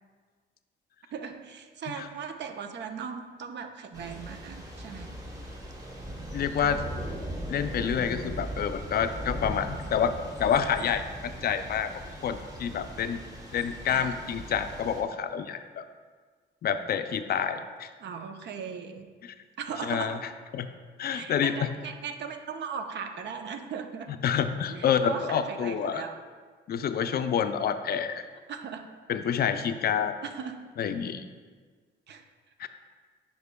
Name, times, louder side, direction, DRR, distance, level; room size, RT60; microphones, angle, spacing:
voice 1, 1.1-5.2 6.6-7.0 13.9-14.1 18.0-19.1 19.6-20.3 21.1-24.1 24.7-26.2 28.5-28.9 30.2-30.6 32.1-32.2, right 6 dB, 60° right, 7 dB, 0.6 m, -38 dB
Thunder / Rain, 3.9-15.0, right 1 dB, 15° right, 1.1 m, -39 dB
voice 2, 6.3-6.8 7.5-10.1 10.4-11.9 12.2-13.2 13.5-15.8 16.6-17.9 19.2-19.3 19.8-20.2 20.5-20.7 21.0-21.7 24.2-26.0 26.7-28.2 29.1-30.1 30.8-31.2 32.6-32.7, left 8 dB, 50° left, 9 dB, 0.4 m, -28 dB
9.4 x 5.1 x 2.2 m, 1.5 s
cardioid pair, 90°, 20 cm